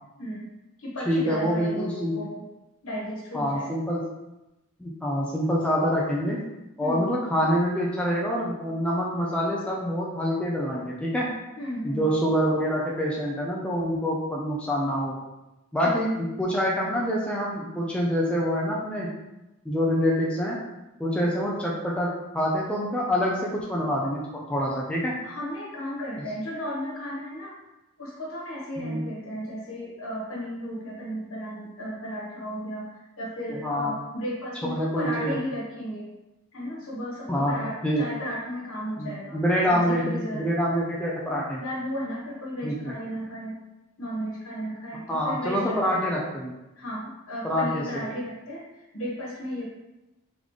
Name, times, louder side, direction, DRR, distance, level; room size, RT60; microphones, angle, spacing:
voice 1, 0.2-0.5 0.8-2.4 2.8-3.7 6.8-7.1 11.6-12.0 15.8-16.1 25.2-27.6 28.0-36.1 36.5-39.4 39.7-40.5 41.6-43.6 44.0-46.1 46.8-48.7 48.9-49.6, equal, 60° left, -3 dB, 1.3 m, -34 dB
voice 2, 1.1-2.2 3.3-4.0 4.8-6.4 6.8-11.3 11.8-15.2 15.7-19.1 19.7-20.6 21.0-25.2 28.8-29.0 33.6-33.9 34.6-35.4 37.3-37.5 37.8-38.0 39.0-41.6 42.6-42.9 45.1-46.5 47.4-48.0, equal, 5° left, -4 dB, 0.5 m, -26 dB
3.8 x 3.6 x 3.1 m, 0.97 s
head